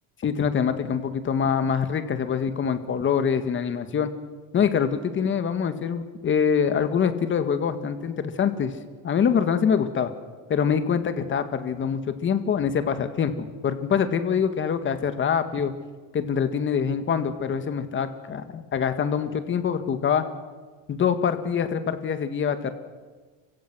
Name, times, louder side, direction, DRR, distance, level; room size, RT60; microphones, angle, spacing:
voice 1, 0.2-4.1 4.5-8.7 9.0-10.1 10.5-15.7 16.1-20.2 20.9-22.7, left 7 dB, 30° left, 9 dB, 1.8 m, -24 dB
30.0 x 16.5 x 6.3 m, 1.4 s
cardioid pair, 130°, 38 cm